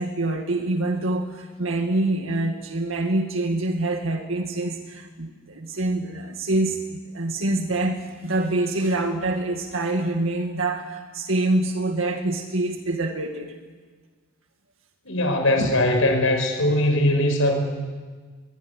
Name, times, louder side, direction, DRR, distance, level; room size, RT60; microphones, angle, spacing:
voice 1, 0.0-13.6 15.6-15.8, right 2 dB, 75° right, 4 dB, 2.0 m, -26 dB
voice 2, 15.0-17.6, left 1 dB, 75° left, 4 dB, 6.0 m, -20 dB
23.0 x 22.0 x 9.8 m, 1.4 s
head